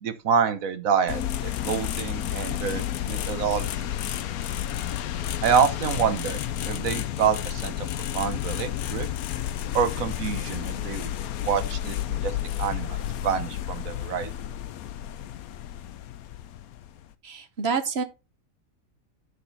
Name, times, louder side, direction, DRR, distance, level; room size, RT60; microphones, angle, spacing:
voice 1, 0.0-3.7 5.4-6.4 6.6-7.7 8.1-9.1 9.7-11.1 11.4-12.3 12.6-13.0 13.2-14.3, right 7 dB, 75° right, 1.4 m, -26 dB
sound 1, 1.1-17.1, left 11 dB, 85° left, 1.1 m, -31 dB
voice 2, 17.2-18.0, right 5 dB, 50° right, 1.2 m, -27 dB
8.3 x 6.3 x 4.1 m
omnidirectional pair, 1.5 m